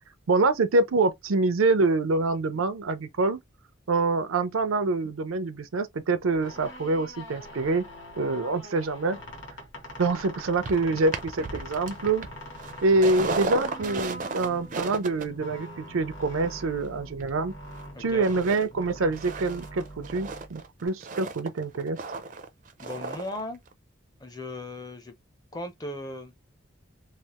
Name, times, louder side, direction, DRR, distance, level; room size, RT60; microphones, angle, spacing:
voice 1, 0.3-3.4 3.9-7.9 8.2-9.2 10.0-12.3 12.8-17.5 18.0-22.0, right 3 dB, 85° right, 0.5 m, -25 dB
sound 1, 6.3-20.9, equal, 60° left, 1.1 m, -43 dB
sound 2, 10.6-17.8 18.2-18.6 18.9-23.4 23.7-23.8, right 3 dB, 40° right, 0.4 m, -36 dB
voice 2, 17.9-18.3 22.8-23.6 24.2-25.1 25.5-26.3, left 1 dB, 20° left, 0.5 m, -37 dB
3.2 x 2.0 x 2.9 m
head